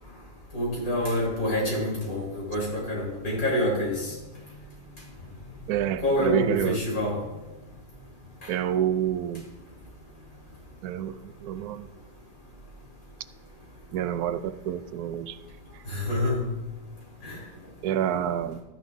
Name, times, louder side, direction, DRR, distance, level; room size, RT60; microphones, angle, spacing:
voice 1, 0.5-4.2 6.0-7.2 8.4-8.5 15.9-16.4 17.2-17.4 18.0-18.1, left 1 dB, 70° left, 4.8 m, -27 dB
voice 2, 5.7-6.8 8.5-9.4 10.8-11.9 13.9-15.4 17.8-18.6, right 10 dB, 85° right, 1.1 m, -28 dB
13.5 x 10.0 x 3.6 m
omnidirectional pair, 1.6 m